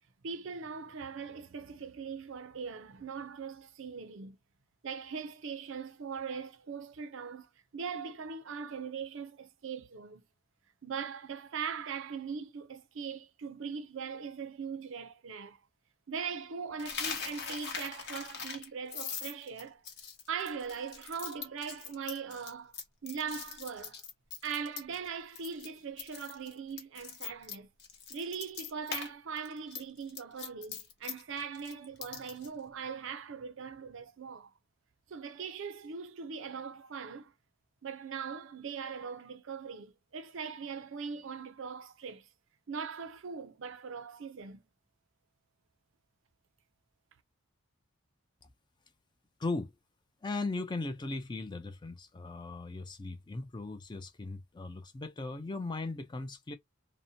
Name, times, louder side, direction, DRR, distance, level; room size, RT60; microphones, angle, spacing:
voice 1, 0.2-4.4 4.8-10.2 10.8-15.6 16.1-19.8 20.3-22.8 23.0-24.0 24.4-27.7 28.1-34.5 35.1-37.3 37.8-42.3 42.7-44.6, right 6 dB, 60° right, 0.5 m, -40 dB
Coin (dropping), 16.8-25.1 25.3-25.7 26.0-29.1 29.4-32.5, left 6 dB, 55° left, 0.8 m, -41 dB
voice 2, 49.4-49.7 50.2-56.5, left 3 dB, 20° left, 0.3 m, -38 dB
2.8 x 2.1 x 2.6 m
head